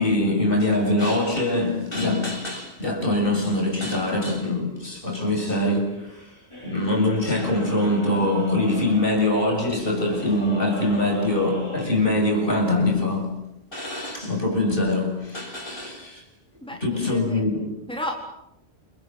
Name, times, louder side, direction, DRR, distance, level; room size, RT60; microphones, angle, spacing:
voice 1, 0.0-6.4 6.6-13.4 13.7-16.2 16.8-17.7, left 2 dB, 50° left, 7.5 m, -23 dB
sound 1, 6.5-11.9, equal, 25° left, 6.2 m, -38 dB
voice 2, 16.6-17.4 17.9-18.2, left 1 dB, 5° left, 4.0 m, -33 dB
29.5 x 25.0 x 8.0 m
omnidirectional pair, 1.2 m